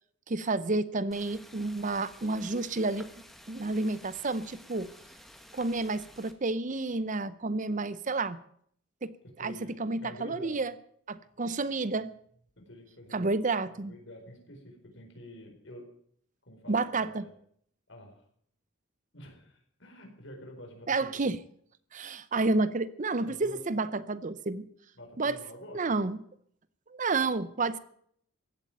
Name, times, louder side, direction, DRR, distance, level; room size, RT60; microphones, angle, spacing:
voice 1, 0.3-3.1 3.5-4.9 5.5-8.4 9.0-9.1 9.4-10.7 11.1-12.1 13.1-13.9 16.7-17.3 20.9-21.4 21.9-24.7 25.2-25.4 25.7-26.2 26.9-27.8, right 3 dB, 40° right, 0.7 m, -30 dB
sound 1, 1.1-6.3, equal, ahead, 1.4 m, -53 dB
voice 2, 9.2-10.6 12.6-13.3 13.7-15.9 16.5-17.3 17.9-18.2 19.1-21.2 23.2-23.6 24.9-25.8, equal, 60° left, 4.7 m, -48 dB
16.0 x 8.3 x 9.1 m
head